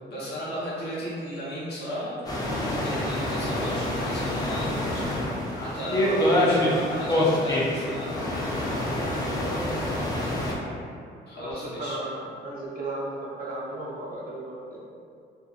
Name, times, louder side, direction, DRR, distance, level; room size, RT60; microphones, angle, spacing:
voice 1, 0.1-5.1 5.5-8.2 11.3-12.0, equal, 55° left, -9 dB, 1.0 m, -35 dB
sound 1, 2.2-10.5, left 1 dB, 20° left, 0.5 m, -26 dB
voice 2, 6.0-6.8 8.7-10.1 11.3-14.8, right 2 dB, 45° right, -5 dB, 0.6 m, -35 dB
2.5 x 2.4 x 2.4 m, 2.4 s
cardioid pair, 90°, 20 cm